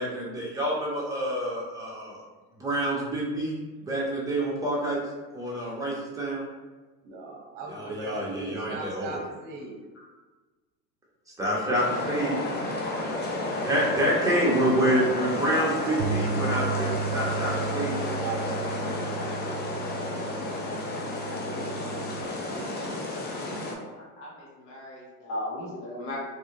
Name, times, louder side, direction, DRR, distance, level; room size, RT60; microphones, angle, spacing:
voice 1, 0.0-2.2 2.6-5.0 5.3-6.4 7.6-9.2 11.4-12.3 13.5-18.6, right 1 dB, 5° right, -6 dB, 0.9 m, -27 dB
voice 2, 7.0-9.8, right 1 dB, 45° right, 0 dB, 0.9 m, -39 dB
voice 3, 11.6-12.0 12.3-12.6 23.7-26.2, left 1 dB, 55° left, -5 dB, 1.4 m, -38 dB
sound 1, 11.7-23.7, left 2 dB, 25° left, 0.5 m, -32 dB
sound 2, 16.0-22.3, right 6 dB, 65° right, 0.6 m, -34 dB
2.8 x 2.4 x 3.0 m, 1.3 s
hypercardioid pair, 90°, 46 cm